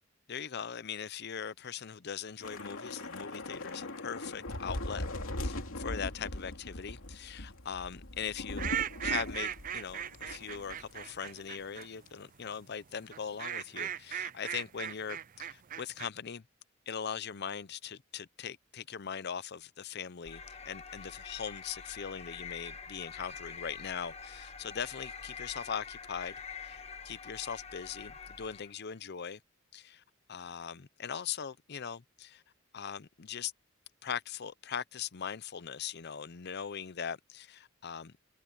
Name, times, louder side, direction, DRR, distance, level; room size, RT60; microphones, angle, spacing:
voice 1, 0.3-5.0 5.4-8.7 9.0-16.4 16.9-26.4 26.6-29.4 29.7-30.0 30.3-32.4 32.7-33.5 34.0-38.1, left 7 dB, 55° left, 0.6 m, -40 dB
Thunder / Rain, 2.4-11.0 11.3-11.5 11.8-12.1, left 1 dB, 80° left, 2.8 m, -40 dB
sound 1, 8.6-11.9 13.1-16.1, right 9 dB, 40° right, 0.5 m, -37 dB
sound 2, 20.2-28.8, left 6 dB, 30° left, 1.3 m, -46 dB
head